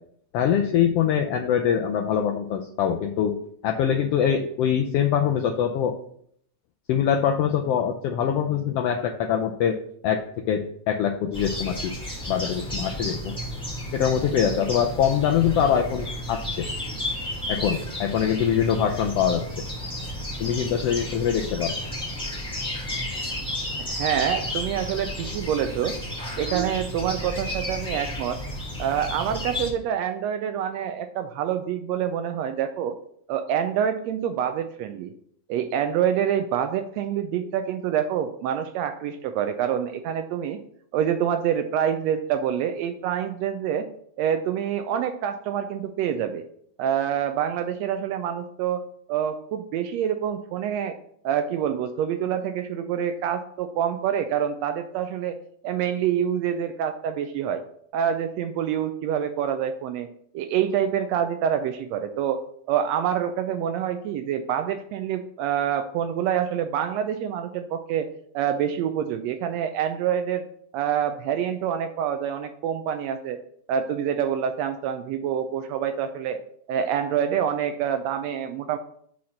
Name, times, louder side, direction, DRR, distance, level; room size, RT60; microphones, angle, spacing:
voice 1, 0.3-3.4 3.6-6.0 6.9-9.8 10.0-11.9 12.3-13.4 13.9-16.7 17.5-19.6 20.4-21.7, left 8 dB, 90° left, 3 dB, 1.4 m, -23 dB
sound 1, 11.3-29.7, left 1 dB, 5° left, 1.1 m, -32 dB
voice 2, 23.8-26.0 26.4-28.4 28.8-33.0 33.3-35.1 35.5-40.6 40.9-43.9 44.2-46.4 46.8-48.8 49.1-51.0 51.2-55.3 55.6-57.6 57.9-60.1 60.3-62.4 62.7-68.1 68.3-70.4 70.7-73.4 73.7-76.4 76.7-78.8, right 9 dB, 80° right, 8 dB, 1.6 m, -26 dB
5.8 x 4.1 x 6.3 m, 0.65 s
omnidirectional pair, 3.4 m